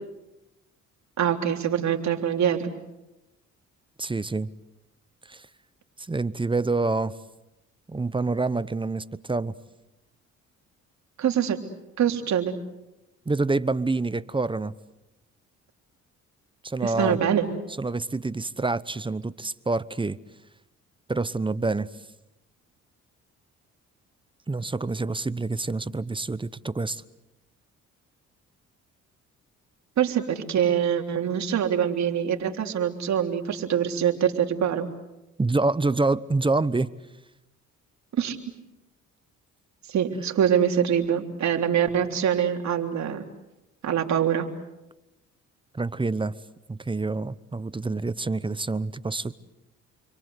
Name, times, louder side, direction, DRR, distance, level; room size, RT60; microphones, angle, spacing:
voice 1, 1.2-2.7 11.2-11.6 12.0-12.5 16.8-17.5 30.0-34.9 38.1-38.4 39.9-43.2 43.8-44.5, right 9 dB, 65° right, 4 dB, 3.6 m, -24 dB
voice 2, 4.0-4.5 5.3-5.5 6.0-7.1 7.9-9.5 13.3-14.7 16.6-17.2 17.8-20.2 21.1-21.9 24.5-27.0 35.4-36.9 45.7-46.4 46.7-49.3, right 3 dB, 15° right, 16 dB, 0.9 m, -27 dB
30.0 x 23.5 x 8.1 m, 0.95 s
cardioid pair, 90°, 30 cm